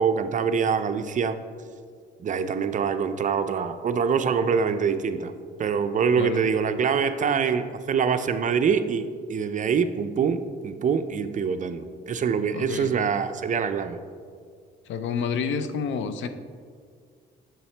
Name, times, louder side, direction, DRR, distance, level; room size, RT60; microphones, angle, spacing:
voice 1, 0.0-1.4 2.2-5.3 5.6-14.0, right 6 dB, 40° right, 10 dB, 0.4 m, -25 dB
voice 2, 6.2-6.5 12.5-12.9 14.9-16.3, left 6 dB, 70° left, 10 dB, 0.5 m, -29 dB
7.1 x 5.6 x 3.3 m, 2.1 s
cardioid pair, 90°, 20 cm